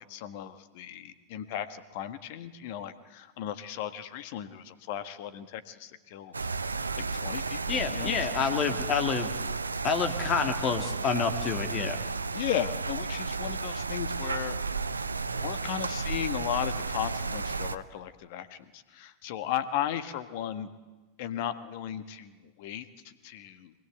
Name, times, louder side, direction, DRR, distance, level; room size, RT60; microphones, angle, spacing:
voice 1, 0.0-6.3 6.6-8.8 11.4-11.5 12.3-14.6 15.3-20.7 21.2-23.7, left 10 dB, 50° left, 12 dB, 1.5 m, -36 dB
sound 1, 6.3-17.8, right 4 dB, 80° right, 0.7 m, -33 dB
voice 2, 7.7-9.3 9.8-12.0, left 6 dB, 30° left, 7 dB, 2.3 m, -28 dB
24.0 x 20.5 x 8.1 m, 1.2 s
figure-of-eight pair, 90°, 0 cm